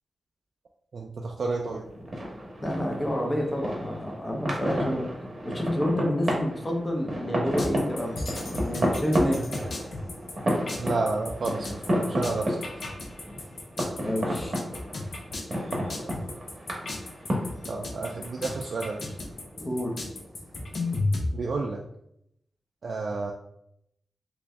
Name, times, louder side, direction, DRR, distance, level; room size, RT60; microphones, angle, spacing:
voice 1, 0.9-1.9 10.8-12.6 17.7-19.1 21.3-21.8 22.8-23.3, right 3 dB, 60° right, 0 dB, 0.4 m, -31 dB
sound 1, 1.7-21.0, equal, 35° right, 0.9 m, -32 dB
voice 2, 2.6-5.1 5.4-9.5 14.0-14.5 19.6-19.9, equal, 20° left, 0 dB, 0.7 m, -29 dB
sound 2, 7.6-21.3, left 2 dB, 55° left, 0.6 m, -34 dB
3.0 x 2.6 x 3.4 m, 0.77 s
wide cardioid pair, 110°, 0 cm